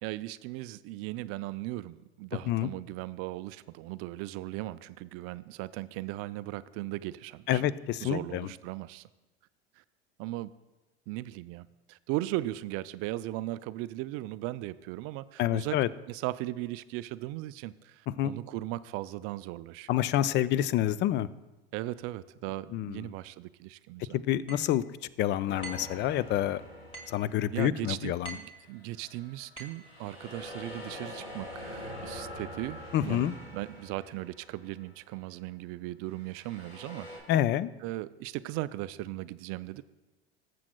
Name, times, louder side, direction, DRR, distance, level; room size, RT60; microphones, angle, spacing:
voice 1, 0.0-7.6 8.0-9.1 10.2-10.5 11.1-15.8 16.1-20.0 21.7-24.2 27.5-37.1 37.8-39.8, right 17 dB, 50° right, 15 dB, 0.4 m, -37 dB
voice 2, 7.5-8.5 15.4-15.9 18.1-18.3 19.9-21.3 22.7-23.1 24.1-24.8 25.2-26.6 27.1-28.4 32.9-33.3 37.3-37.7, left 12 dB, 35° left, 17 dB, 0.4 m, -28 dB
sound 1, 24.5-24.7 25.6-25.9 26.9-27.3 28.2-28.6 29.6-29.9, right 3 dB, 15° left, 1.7 m, -44 dB
sound 2, 25.5-28.0 28.5-35.0 36.1-37.2, left 1 dB, 80° left, 2.7 m, -45 dB
19.5 x 7.6 x 2.2 m, 1.1 s
hypercardioid pair, 80°, 31 cm